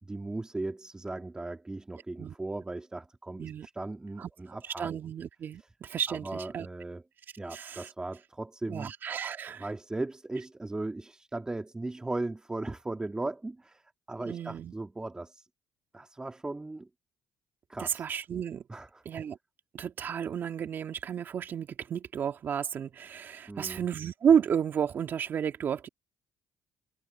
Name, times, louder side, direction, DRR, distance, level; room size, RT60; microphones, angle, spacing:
voice 1, 0.0-4.9 6.1-7.0 7.4-8.9 9.6-13.8 14.1-15.5 15.9-16.9 17.7-18.0 18.7-19.0 23.5-23.8, right 2 dB, 15° right, 4.2 m, -37 dB
voice 2, 4.8-6.7 7.5-7.9 8.7-9.7 14.2-14.7 17.8-18.6 19.1-19.4 19.7-25.9, right 8 dB, 55° right, 2.3 m, -31 dB
supercardioid pair, 65°, 4 cm